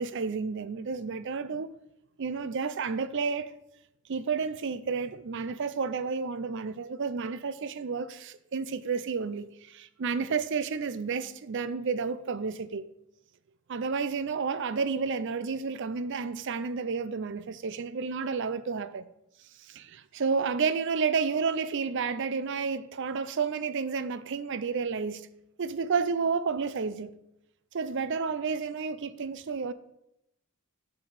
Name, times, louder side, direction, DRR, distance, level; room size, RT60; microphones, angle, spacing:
voice 1, 0.0-1.7 2.2-3.5 4.1-12.9 13.7-19.1 19.7-25.2 25.6-27.1 27.7-29.7, right 5 dB, 55° right, 0.5 m, -31 dB
7.2 x 6.0 x 4.9 m
head